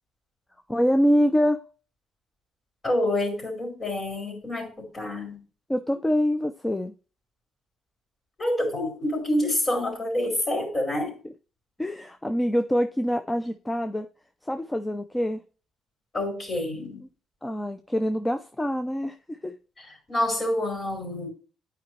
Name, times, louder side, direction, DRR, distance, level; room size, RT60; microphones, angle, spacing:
voice 1, 0.7-1.6 5.7-6.9 11.8-14.1 14.4-15.4 17.4-19.5, equal, 10° left, 8 dB, 0.6 m, -25 dB
voice 2, 2.8-5.4 8.4-11.1 16.1-17.0 19.8-21.3, left 1 dB, 35° left, 1 dB, 4.7 m, -27 dB
9.7 x 5.1 x 3.2 m, 0.36 s
cardioid pair, 90°, 0 cm